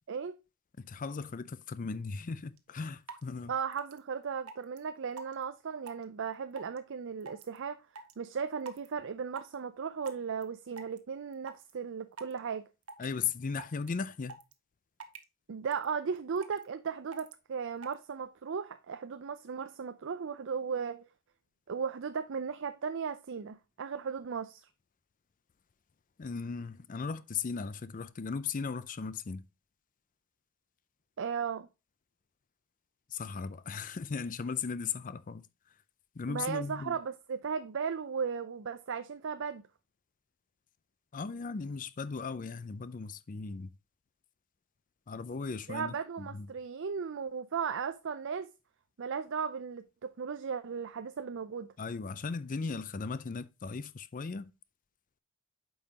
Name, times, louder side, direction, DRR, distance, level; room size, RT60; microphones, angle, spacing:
voice 1, 0.8-3.5 13.0-14.4 26.2-29.4 33.1-35.5 36.2-37.0 41.1-43.7 45.1-46.5 51.8-54.5, left 5 dB, 35° left, 0.5 m, -37 dB
sound 1, 2.6-2.7 3.1-3.2 3.7-4.0 4.5-4.8 5.2-5.4 5.9-6.0 6.6-6.8 7.2-7.6 8.0-8.1 8.7-8.9 9.4-9.5 10.1-10.4 10.8-11.0 11.3-11.7 12.2-12.4 12.9-13.2 13.5-13.9 14.2-14.5 15.0-15.2 15.7-15.9 16.2-16.6 17.1-17.3 17.8-17.9, right 4 dB, 80° right, 1.1 m, -45 dB
voice 2, 3.5-7.9 8.2-12.6 15.5-21.1 21.7-24.7 31.2-31.7 36.3-39.6 45.7-48.5 49.0-51.7, right 6 dB, 60° right, 0.5 m, -36 dB
8.7 x 5.6 x 2.8 m
head